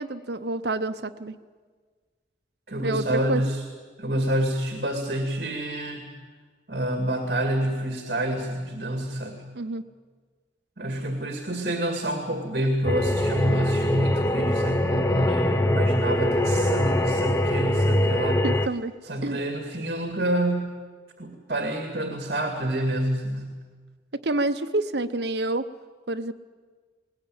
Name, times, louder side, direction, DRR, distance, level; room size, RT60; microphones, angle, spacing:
voice 1, 0.0-1.4 2.8-3.4 9.5-9.8 18.4-18.9 19.2-19.4 24.2-25.7 26.1-26.3, right 2 dB, 70° right, 9 dB, 0.9 m, -28 dB
voice 2, 2.7-3.6 4.0-6.1 6.7-9.4 10.8-18.5 19.0-20.6 21.2-23.5, right 1 dB, 55° right, 4 dB, 2.3 m, -27 dB
sound 1, 12.8-18.7, left 1 dB, 15° left, 0.6 m, -23 dB
20.5 x 19.5 x 8.9 m, 1.5 s
head